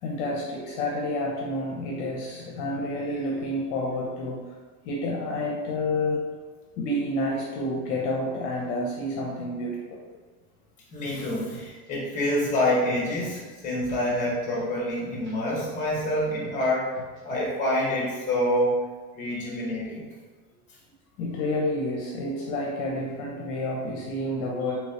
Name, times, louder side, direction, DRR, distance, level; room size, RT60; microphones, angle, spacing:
voice 1, 0.0-4.4 4.8-6.3 6.8-10.0 19.3-19.6 21.2-24.8, left 1 dB, 60° left, -1 dB, 0.7 m, -29 dB
voice 2, 10.9-18.7 19.1-20.1, left 1 dB, 20° left, -5 dB, 1.2 m, -27 dB
sound 1, 10.9-11.9 12.2-13.4 13.6-14.6 14.9-16.7 17.0-17.9, equal, 30° right, 0.9 m, -46 dB
3.3 x 3.1 x 2.8 m, 1.4 s
supercardioid pair, 150°, 41 cm